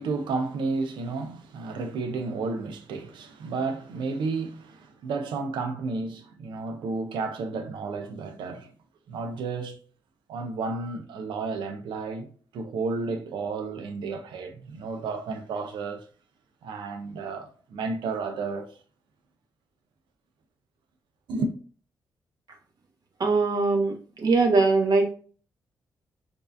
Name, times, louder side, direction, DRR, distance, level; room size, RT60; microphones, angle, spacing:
voice 1, 0.0-8.7 9.1-9.8 10.3-12.3 12.5-16.1 16.6-18.7 21.3-21.5, right 4 dB, 80° right, 0.6 m, -32 dB
voice 2, 23.2-25.1, right 3 dB, 55° right, 1.1 m, -22 dB
4.6 x 2.7 x 2.4 m
supercardioid pair, 50°, 8 cm